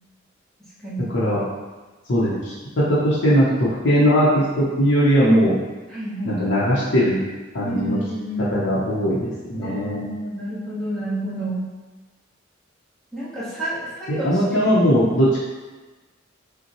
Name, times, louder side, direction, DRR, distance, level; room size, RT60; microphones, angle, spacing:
voice 1, 2.1-5.6 6.2-7.2 7.5-8.0 8.5-10.1 14.1-15.4, equal, 65° left, -9 dB, 0.8 m, -19 dB
voice 2, 5.9-6.4 7.6-8.6 9.6-11.7 13.1-14.4, right 1 dB, ahead, -12 dB, 1.1 m, -29 dB
5.2 x 2.2 x 3.0 m, 1.2 s
head